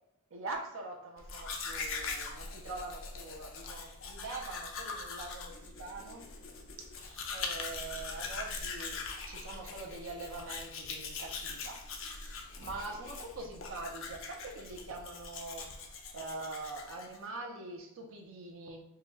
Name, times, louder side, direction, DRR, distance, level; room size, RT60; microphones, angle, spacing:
voice 1, 0.3-6.2 6.8-11.8 12.1-18.8, right 3 dB, 65° right, 1 dB, 0.6 m, -44 dB
Domestic sounds home sounds, 1.2-17.3, left 4 dB, 65° left, 0.6 m, -42 dB
4.6 x 2.3 x 3.0 m, 0.87 s
head